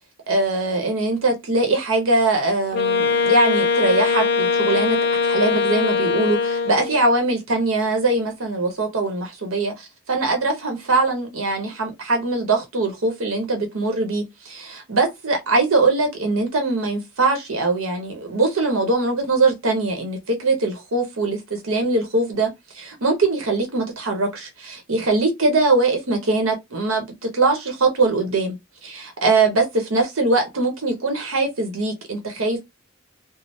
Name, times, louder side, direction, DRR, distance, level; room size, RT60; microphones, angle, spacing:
voice 1, 0.3-5.0 5.2-9.7 10.1-22.5 22.7-28.6 28.8-32.6, right 3 dB, 85° right, 0.9 m, -22 dB
Wind instrument woodwind instrument, 2.7-7.1, left 5 dB, 50° left, 0.4 m, -21 dB
3.2 x 2.0 x 2.7 m
head